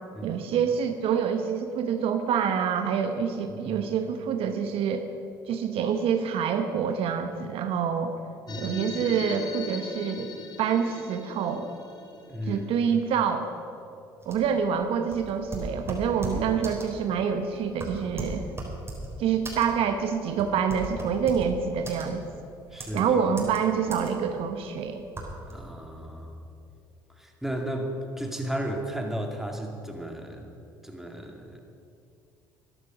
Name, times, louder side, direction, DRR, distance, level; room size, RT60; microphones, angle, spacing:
voice 1, 0.2-5.1 5.5-8.1 8.6-10.3 10.6-11.7 12.5-13.5 14.3-18.5 19.2-22.2 22.9-25.0, right 7 dB, 65° right, 7 dB, 1.0 m, -26 dB
voice 2, 3.5-3.8 8.5-8.8 12.3-12.7 22.7-23.3 25.5-26.4 27.1-30.5 30.8-31.6, right 1 dB, 5° right, 2 dB, 2.2 m, -34 dB
sound 1, 8.5-13.4, left 4 dB, 40° left, 1.9 m, -41 dB
sound 2, 14.2-25.5, right 2 dB, 25° right, 3.9 m, -38 dB
13.0 x 11.0 x 6.2 m, 2.6 s
hypercardioid pair, 65°, 11 cm